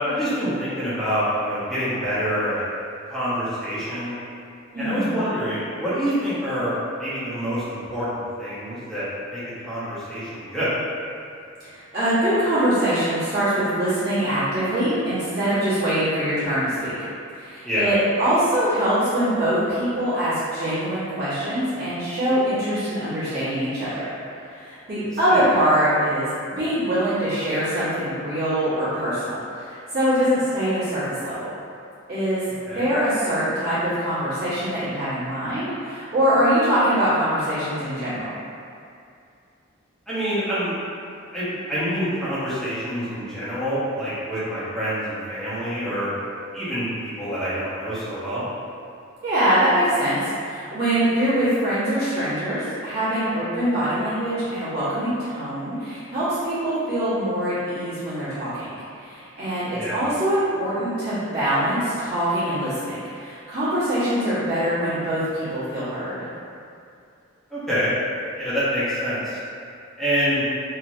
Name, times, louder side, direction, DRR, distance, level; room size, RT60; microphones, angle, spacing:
voice 1, 0.0-2.6 3.1-4.2 4.8-6.7 7.0-10.7 17.6-17.9 25.3-25.5 32.7-32.9 40.1-40.7 41.3-46.1 46.5-48.4 59.7-60.1 67.5-67.9 68.4-69.4 70.0-70.4, equal, ahead, -13 dB, 0.8 m, -26 dB
voice 2, 4.7-5.1 11.6-16.9 17.3-24.0 24.4-26.3 26.6-31.5 32.1-32.4 32.7-38.3 49.2-58.7 59.0-66.2, right 1 dB, 50° right, -14 dB, 1.2 m, -23 dB
3.0 x 2.7 x 2.6 m, 2.5 s
head